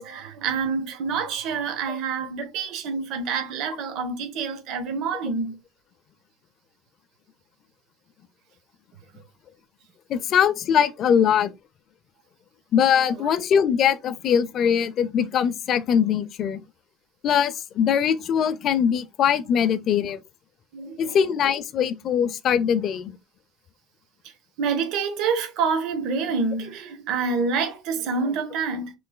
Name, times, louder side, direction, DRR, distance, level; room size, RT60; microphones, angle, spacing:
voice 1, 0.0-5.6 13.2-13.3 20.7-21.2 24.6-28.9, right 5 dB, 55° right, 1.0 m, -27 dB
voice 2, 10.1-11.5 12.7-16.6 17.2-20.2 21.0-23.2, left 8 dB, 40° left, 0.4 m, -22 dB
5.9 x 3.2 x 2.2 m
cardioid pair, 165°, 0 cm